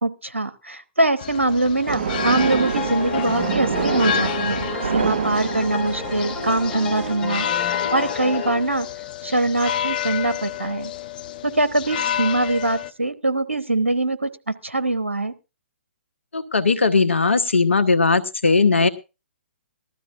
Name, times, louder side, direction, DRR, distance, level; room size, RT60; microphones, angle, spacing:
voice 1, 0.0-8.9 9.2-10.9 11.4-15.3, right 2 dB, 85° right, 11 dB, 0.9 m, -23 dB
sound 1, 1.2-12.9, left 9 dB, 40° left, 0.5 m, -30 dB
sound 2, 1.9-7.1, right 7 dB, 55° right, 0.6 m, -27 dB
sound 3, 2.4-8.5, left 5 dB, 10° left, 5.4 m, -31 dB
voice 2, 16.3-18.9, left 4 dB, 70° left, 12 dB, 1.2 m, -18 dB
19.0 x 13.0 x 2.5 m, 0.27 s
figure-of-eight pair, 125°, 7 cm